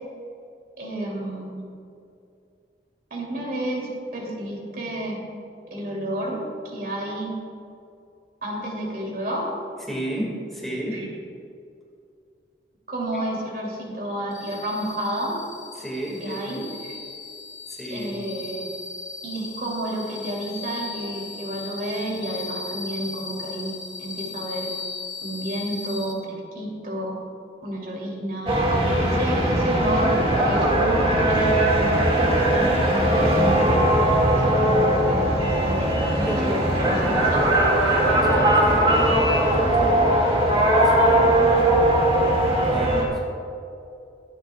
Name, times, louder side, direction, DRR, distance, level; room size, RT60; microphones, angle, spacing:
voice 1, 0.8-1.6 3.1-5.2 5.7-6.4 6.7-7.3 8.4-9.5 10.9-11.1 12.9-15.4 16.2-16.6 17.9-18.6 19.2-23.7 24.0-24.7 25.2-27.2 27.6-28.5 29.0-37.7, right 1 dB, 55° right, -2 dB, 2.9 m, -30 dB
voice 2, 9.9-11.0 13.1-13.2 15.8-16.6 17.7-18.1 36.3-37.3 37.9-40.1 40.8-41.8 42.6-43.2, equal, ahead, -4 dB, 2.0 m, -33 dB
sound 1, 14.3-26.1, left 4 dB, 20° left, 1.4 m, -37 dB
sound 2, 28.5-43.0, right 1 dB, 30° right, 2.1 m, -19 dB
23.0 x 9.2 x 2.4 m, 2.5 s
head